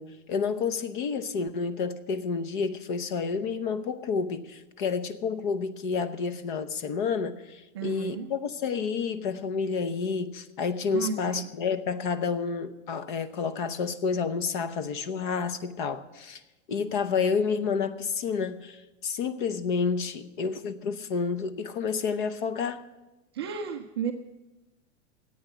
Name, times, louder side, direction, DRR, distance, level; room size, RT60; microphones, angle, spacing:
voice 1, 0.0-16.4 16.7-22.9, left 5 dB, 45° left, 12 dB, 0.8 m, -30 dB
voice 2, 7.7-8.3 10.9-11.5 23.3-24.1, right 7 dB, 25° right, 2 dB, 0.4 m, -33 dB
14.5 x 8.9 x 8.0 m, 1.0 s
supercardioid pair, 175°, 36 cm